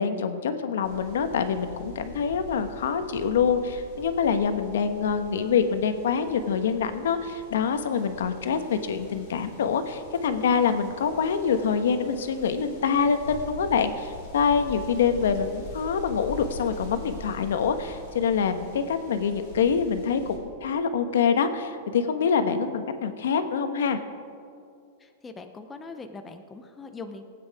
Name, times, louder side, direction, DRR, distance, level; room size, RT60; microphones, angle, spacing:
voice 1, 0.0-24.0, left 6 dB, 85° left, 9 dB, 1.1 m, -25 dB
sound 1, 0.8-20.4, left 2 dB, 40° left, 3.3 m, -44 dB
voice 2, 25.0-27.2, left 3 dB, 10° left, 6 dB, 0.5 m, -41 dB
19.0 x 8.9 x 4.8 m, 2.4 s
supercardioid pair, 175°, 0 cm